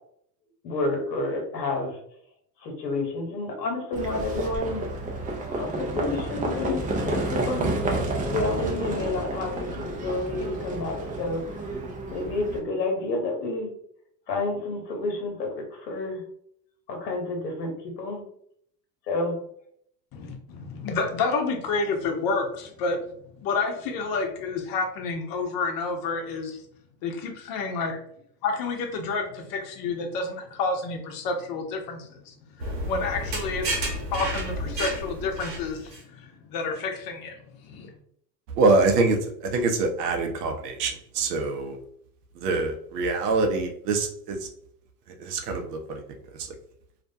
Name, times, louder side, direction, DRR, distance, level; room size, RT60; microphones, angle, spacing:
voice 1, 0.6-2.0 2.6-4.8 5.5-7.8 8.3-11.4 12.1-13.7 14.3-16.2 16.9-17.7 18.0-18.2 19.1-19.4, left 2 dB, 80° left, 1 dB, 1.0 m, -29 dB
Livestock farm animals working animals, 3.9-12.6, right 2 dB, 20° right, 0.4 m, -30 dB
voice 2, 20.1-23.1 23.4-26.6 27.0-28.0 28.4-33.8 34.1-37.3 37.6-37.9, left 4 dB, 45° left, 4 dB, 0.7 m, -29 dB
sound 1, 32.6-36.0, right 1 dB, 85° right, 1.0 m, -31 dB
voice 3, 38.5-41.8 42.4-44.5 45.2-46.0 46.4-46.5, right 3 dB, 70° right, 4 dB, 0.7 m, -25 dB
2.4 x 2.1 x 2.6 m, 0.67 s
hypercardioid pair, 85°, 49 cm